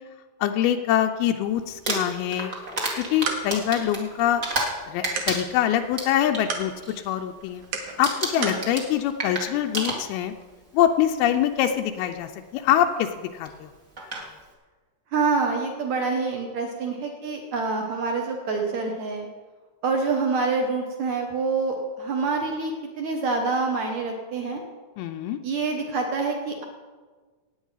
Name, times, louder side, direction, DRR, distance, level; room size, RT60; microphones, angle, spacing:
voice 1, 0.4-2.5 3.1-4.4 4.9-6.7 7.1-7.6 8.0-10.3 10.7-13.7 25.0-25.4, left 10 dB, 90° left, 5 dB, 2.1 m, -24 dB
Crumpling crinkling, 1.7-4.8 5.0-6.4 6.8-7.1 7.4-7.7 8.0-10.4 11.4-11.5 13.4-13.5 14.0-14.2, right 2 dB, 45° right, 1.0 m, -30 dB
sound 1, 2.8-8.7, right 5 dB, 65° right, 2.7 m, -37 dB
voice 2, 15.1-19.3 19.8-24.6 25.4-26.6, right 4 dB, 85° right, 2 dB, 1.6 m, -26 dB
18.0 x 8.7 x 5.6 m, 1.4 s
omnidirectional pair, 5.1 m